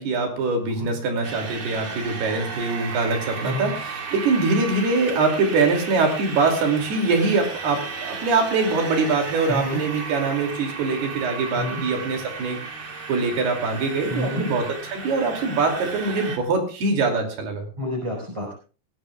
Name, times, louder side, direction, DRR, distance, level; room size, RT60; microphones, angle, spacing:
voice 1, 0.0-12.6 13.1-17.7, right 3 dB, 80° right, 3 dB, 4.7 m, -23 dB
sound 1, 1.2-16.4, right 4 dB, 40° right, 1.6 m, -34 dB
voice 2, 3.4-3.7 9.5-9.8 11.5-11.8 14.1-14.4 17.8-18.5, left 1 dB, 5° right, -4 dB, 4.1 m, -28 dB
21.5 x 16.0 x 2.4 m, 0.36 s
omnidirectional pair, 4.6 m